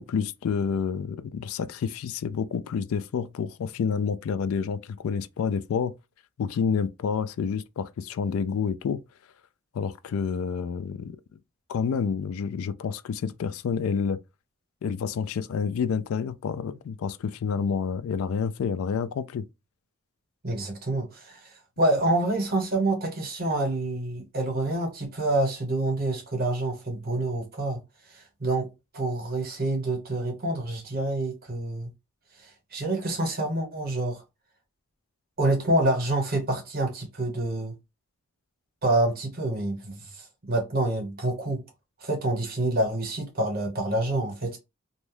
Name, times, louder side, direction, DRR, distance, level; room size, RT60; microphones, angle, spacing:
voice 1, 0.0-6.0 6.4-9.0 9.7-11.2 11.7-14.2 14.8-19.4, left 6 dB, 70° left, 0.3 m, -29 dB
voice 2, 20.4-27.8 28.1-31.9 32.4-34.2 35.4-37.7 38.8-41.6 42.0-44.6, right 2 dB, 40° right, 1.0 m, -27 dB
2.6 x 2.2 x 3.2 m
head